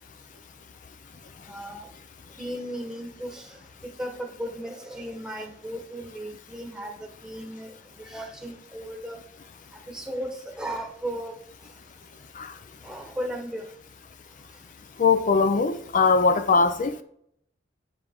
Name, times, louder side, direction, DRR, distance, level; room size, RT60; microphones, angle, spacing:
voice 1, 1.5-1.9 2.4-3.6 4.0-6.9 7.2-9.2 9.9-10.3 10.6-11.4 12.8-13.7, right 1 dB, 5° right, 1.2 m, -35 dB
voice 2, 15.0-17.0, left 4 dB, 45° left, 0.5 m, -21 dB
8.5 x 5.0 x 3.6 m
head